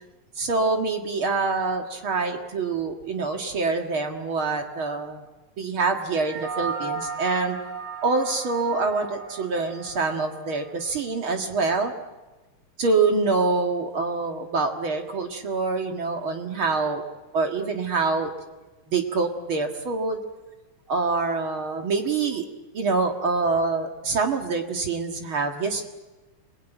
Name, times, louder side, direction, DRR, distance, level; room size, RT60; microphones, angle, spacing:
voice 1, 0.4-5.2 5.6-7.6 8.0-11.9 12.8-17.0 17.3-18.3 18.9-20.2 20.9-22.4 22.7-25.8, right 4 dB, 45° right, 4 dB, 2.3 m, -25 dB
sound 1, 6.1-10.7, right 5 dB, 75° right, 3.9 m, -35 dB
28.0 x 21.0 x 9.2 m, 1.1 s
omnidirectional pair, 3.5 m